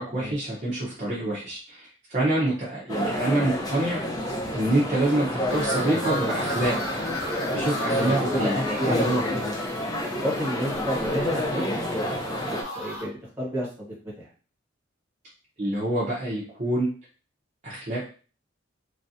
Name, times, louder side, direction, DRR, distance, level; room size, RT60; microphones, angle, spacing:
voice 1, 0.0-4.0 4.5-6.8 7.5-8.6 8.9-9.2 15.6-16.9 17.6-18.0, right 1 dB, 35° right, -6 dB, 0.7 m, -26 dB
sound 1, 2.9-12.6, left 1 dB, 20° left, 0.5 m, -29 dB
sound 2, 5.5-13.0, equal, 80° left, 1.3 m, -36 dB
voice 2, 7.8-9.1 9.4-9.5 10.2-11.8 12.4-13.9, equal, 10° right, -5 dB, 1.3 m, -30 dB
3.2 x 2.5 x 2.7 m, 0.38 s
head